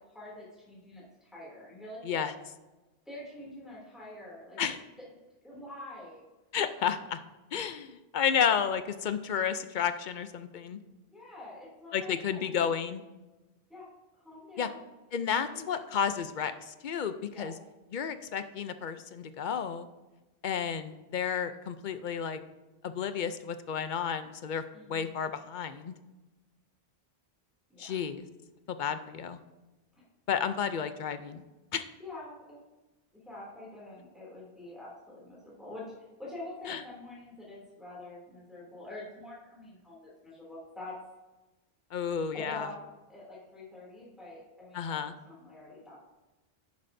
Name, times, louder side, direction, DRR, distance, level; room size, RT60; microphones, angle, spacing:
voice 1, 0.1-2.3 3.0-4.6 5.4-6.2 11.1-12.7 13.7-13.9 14.2-14.8 15.5-15.8 17.3-17.5 24.7-25.1 27.7-28.0 29.9-30.0 32.0-32.6 33.1-41.0 42.3-42.8 43.1-45.0 45.2-46.0, left 2 dB, ahead, -7 dB, 2.7 m, -46 dB
voice 2, 6.5-7.2 7.5-10.8 11.9-13.0 14.6-14.7 15.1-17.5 17.9-19.9 20.4-22.4 22.8-24.6 24.9-25.9 27.8-28.3 28.7-29.4 30.3-31.4 31.7-31.9 36.7-36.8 41.9-42.7 44.7-45.1, left 7 dB, 55° left, 10 dB, 0.7 m, -31 dB
11.0 x 9.7 x 2.7 m, 1.1 s
omnidirectional pair, 1.1 m